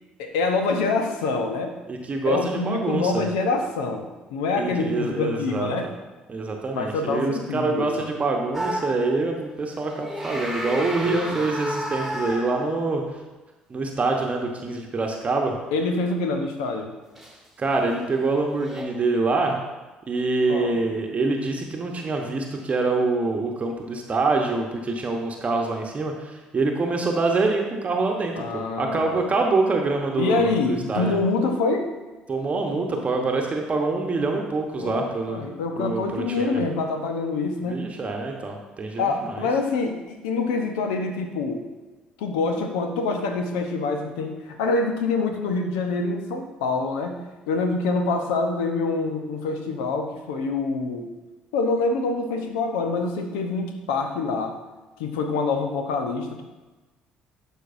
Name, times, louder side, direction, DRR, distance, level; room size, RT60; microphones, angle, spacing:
voice 1, 0.2-1.7 2.3-5.9 6.8-8.1 10.7-11.4 15.7-17.0 20.5-20.8 28.4-29.3 30.2-31.9 32.9-33.0 34.8-37.9 39.0-41.7 42.2-47.2 47.5-51.1 51.5-54.6 55.0-56.4, left 3 dB, 75° left, 4 dB, 0.8 m, -26 dB
voice 2, 1.9-3.3 4.6-5.7 6.3-13.0 13.7-15.5 17.6-19.6 20.1-31.2 32.3-35.4 35.8-36.6 37.7-39.5, right 3 dB, 35° right, 2 dB, 1.0 m, -25 dB
sound 1, 8.5-9.2 9.9-13.0 17.2-17.4 18.6-18.8, equal, ahead, 1.7 m, -31 dB
11.5 x 4.6 x 2.6 m, 1.2 s
hypercardioid pair, 55°, 4 cm